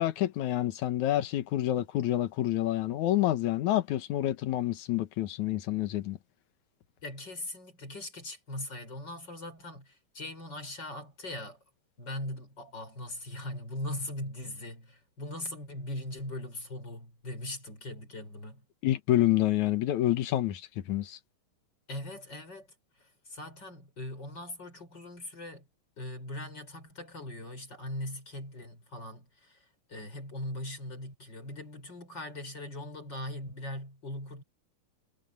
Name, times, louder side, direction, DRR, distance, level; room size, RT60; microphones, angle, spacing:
voice 1, 0.0-6.2 18.8-20.6 20.9-21.2, left 14 dB, 65° left, 2.3 m, -28 dB
voice 2, 7.0-11.6 12.0-18.6 21.9-22.7 23.0-25.7 26.0-34.4, left 1 dB, 30° left, 7.2 m, -40 dB
omnidirectional pair, 4.0 m